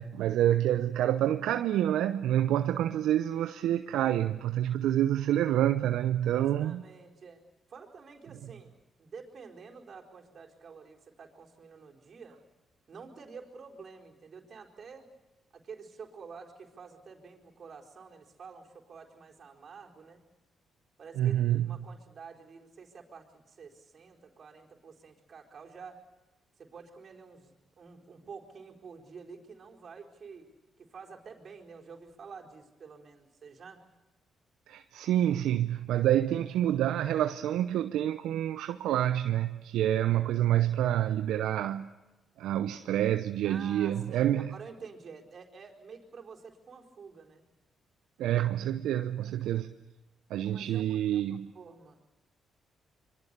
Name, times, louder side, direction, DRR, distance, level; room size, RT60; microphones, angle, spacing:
voice 1, 0.0-6.8 21.2-21.7 34.7-41.9 42.4-44.5 48.2-49.7 50.3-51.5, right 12 dB, 75° right, 0.7 m, -27 dB
voice 2, 6.3-7.4 7.7-12.4 12.9-15.1 15.5-20.2 21.0-26.0 26.6-30.5 30.8-33.8 43.4-47.4 50.4-51.2 51.5-52.2, right 5 dB, 55° right, 4.4 m, -49 dB
26.0 x 23.5 x 6.9 m
hypercardioid pair, 50°, 0 cm